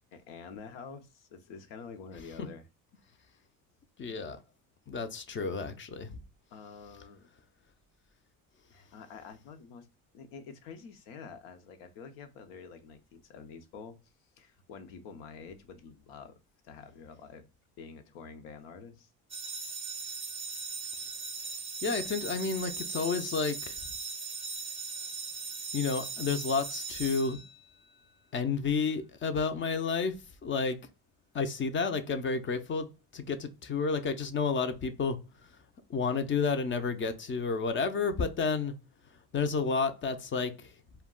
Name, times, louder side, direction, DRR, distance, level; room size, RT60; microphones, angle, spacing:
voice 1, 0.1-2.7 3.1-3.3 6.5-7.3 8.7-9.9 10.1-14.0 14.4-16.4 16.6-17.5 17.8-19.1, left 5 dB, 85° left, 0.7 m, -48 dB
voice 2, 4.0-4.4 4.9-6.2 21.8-23.8 25.7-27.4 28.3-30.1 30.4-30.8 31.3-32.9 33.1-35.2 35.9-38.7 39.3-40.7, left 5 dB, 30° left, 0.4 m, -31 dB
sound 1, 19.3-28.0, right 5 dB, 15° right, 0.6 m, -39 dB
2.3 x 2.2 x 3.6 m
supercardioid pair, 95°, 41 cm